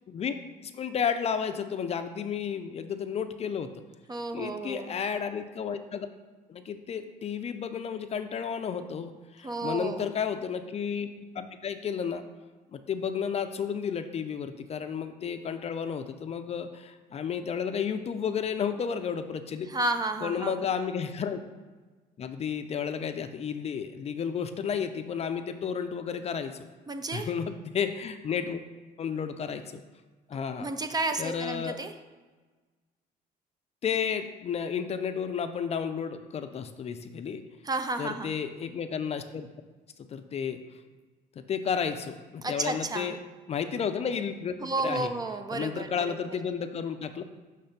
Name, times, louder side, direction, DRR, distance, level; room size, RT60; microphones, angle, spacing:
voice 1, 0.6-3.7 4.3-6.1 6.5-12.2 12.7-19.7 20.2-21.4 22.2-26.7 27.1-28.6 29.0-29.8 30.3-30.7 31.2-31.8 33.8-37.4 38.0-39.5 40.0-40.6 41.4-43.2 43.5-44.6 44.8-45.1 45.5-47.2, left 7 dB, 40° left, 8 dB, 0.5 m, -32 dB
voice 2, 4.1-4.9 9.4-10.0 19.7-20.6 26.9-27.3 30.6-31.9 37.6-38.3 42.4-43.1 44.6-46.2, right 2 dB, 25° right, 7 dB, 0.5 m, -32 dB
6.5 x 3.3 x 5.8 m, 1.3 s
cardioid pair, 110°, 17 cm